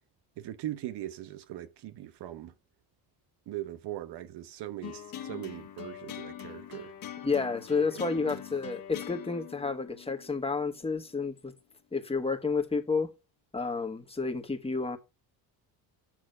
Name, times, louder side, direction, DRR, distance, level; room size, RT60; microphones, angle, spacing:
voice 1, 0.4-2.5 3.5-6.9 7.7-8.4, right 13 dB, 75° right, 1.0 m, -40 dB
sound 1, 4.8-11.3, left 10 dB, 55° left, 1.7 m, -43 dB
voice 2, 7.2-11.5 11.9-13.1 13.5-15.0, left 4 dB, 15° left, 1.6 m, -30 dB
7.5 x 6.4 x 6.7 m
cardioid pair, 105°, 40 cm